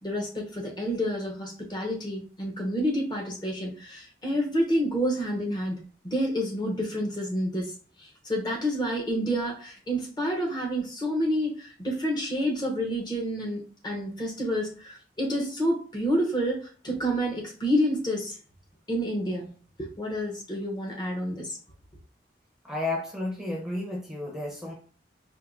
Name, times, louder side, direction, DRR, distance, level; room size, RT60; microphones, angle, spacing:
voice 1, 0.0-5.8 6.0-7.7 8.0-18.4 18.9-19.5 19.8-21.6, equal, 25° left, -1 dB, 0.9 m, -29 dB
voice 2, 22.6-24.7, left 2 dB, 5° right, -2 dB, 0.7 m, -32 dB
4.5 x 2.7 x 2.6 m, 0.39 s
head